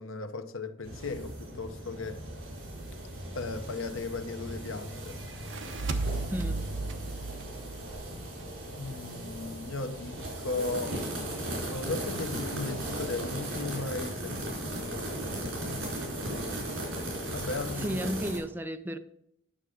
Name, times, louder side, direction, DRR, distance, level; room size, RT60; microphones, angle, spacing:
voice 1, 0.0-2.2 3.3-5.2 8.7-10.9 11.4-15.1 17.3-18.0, left 3 dB, 75° left, 0.9 m, -36 dB
sound 1, 0.8-18.4, right 1 dB, 80° right, 4.1 m, -37 dB
sound 2, 5.3-8.6, right 3 dB, 65° right, 1.0 m, -35 dB
voice 2, 6.3-6.7 17.8-19.0, equal, 10° right, 0.5 m, -33 dB
10.0 x 6.6 x 5.0 m
head